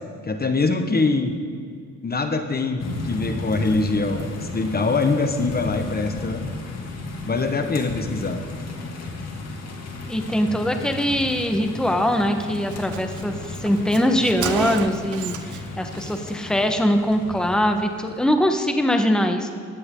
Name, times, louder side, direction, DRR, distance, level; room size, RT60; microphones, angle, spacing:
voice 1, 0.2-1.3 2.0-6.4 7.3-8.4, left 3 dB, 30° left, 6 dB, 1.4 m, -23 dB
sound 1, 2.8-18.3, left 2 dB, 60° left, 2.9 m, -34 dB
voice 2, 10.1-13.3 13.6-19.5, equal, ahead, 5 dB, 1.4 m, -22 dB
Car, 12.0-12.1 12.4-12.5 12.7-15.7 15.9-16.2, right 8 dB, 75° right, 1.1 m, -32 dB
19.0 x 14.5 x 3.9 m, 2.3 s
cardioid pair, 90°, 30 cm